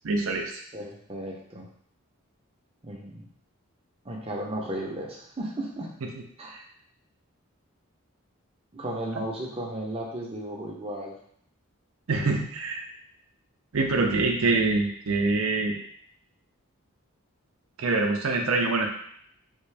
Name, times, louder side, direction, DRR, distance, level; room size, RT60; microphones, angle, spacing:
voice 1, 0.0-0.5 12.1-12.8 13.7-15.8 17.8-18.9, right 3 dB, 70° right, 3 dB, 0.5 m, -25 dB
voice 2, 0.7-1.7 2.8-3.3 4.0-5.9 6.4-6.5 8.7-11.1, right 1 dB, 25° right, -2 dB, 0.7 m, -34 dB
3.6 x 2.6 x 3.3 m, 0.64 s
head